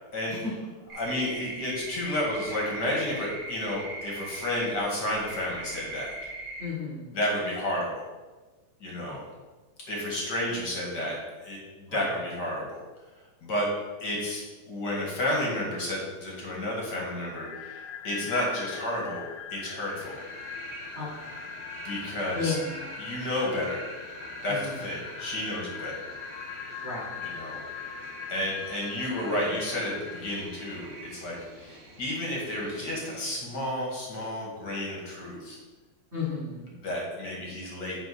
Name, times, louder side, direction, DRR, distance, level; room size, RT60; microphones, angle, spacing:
voice 1, 0.9-6.1 7.1-8.0 8.8-9.3 9.9-11.2 11.4-12.8 13.4-13.7 14.0-19.2 19.5-20.3 21.8-22.6 23.0-23.9 24.4-26.0 27.2-27.6 28.3-35.6 36.8-38.0, left 1 dB, 40° left, -3 dB, 2.0 m, -31 dB
sound 1, 0.9-4.8 5.1-6.7, right 2 dB, 30° right, 1.1 m, -39 dB
voice 2, 6.6-7.1 9.1-9.2 11.9-12.0 20.9-21.1 22.3-22.9 24.5-24.7 26.8-27.2 36.1-36.6, left 4 dB, 80° right, -5 dB, 0.6 m, -33 dB
sound 2, 17.3-30.4, left 7 dB, 75° left, 1.6 m, -41 dB
sound 3, 19.9-33.3, right 2 dB, 60° right, 2.6 m, -47 dB
9.2 x 3.7 x 5.4 m, 1.3 s
omnidirectional pair, 3.4 m